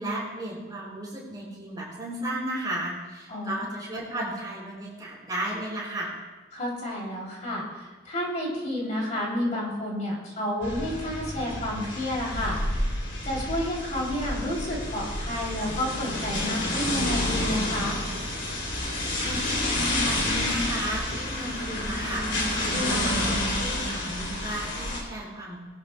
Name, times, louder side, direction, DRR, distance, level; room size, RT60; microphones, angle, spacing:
voice 1, 0.0-6.2 19.2-25.6, right 1 dB, 20° right, -5 dB, 4.3 m, -34 dB
voice 2, 3.3-3.7 6.5-12.9 13.2-18.0, left 1 dB, 40° left, -3 dB, 3.0 m, -30 dB
sound 1, 10.6-25.0, left 1 dB, 60° left, 3.0 m, -29 dB
21.5 x 12.5 x 2.2 m, 1.3 s
head